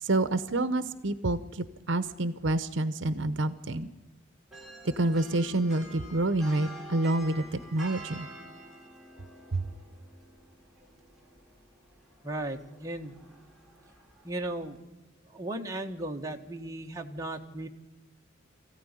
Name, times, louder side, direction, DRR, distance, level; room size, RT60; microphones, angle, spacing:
voice 1, 0.0-3.9 5.0-8.3 9.5-9.6, right 2 dB, 65° right, 13 dB, 0.9 m, -28 dB
sound 1, 4.5-14.8, right 1 dB, ahead, 3.4 m, -49 dB
voice 2, 12.2-13.2 14.2-14.8 15.3-17.7, right 1 dB, 15° right, 1 dB, 1.6 m, -36 dB
23.5 x 15.5 x 9.9 m, 1.2 s
head